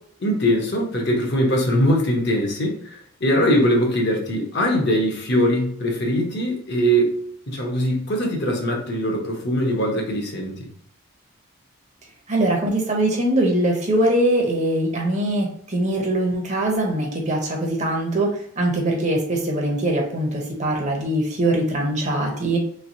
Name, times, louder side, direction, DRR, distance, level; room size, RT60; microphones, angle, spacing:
voice 1, 0.2-7.1 7.5-10.7, equal, 50° left, 1 dB, 0.8 m, -21 dB
voice 2, 12.3-22.6, right 1 dB, 35° right, 0 dB, 0.8 m, -22 dB
3.3 x 3.2 x 2.7 m, 0.63 s
head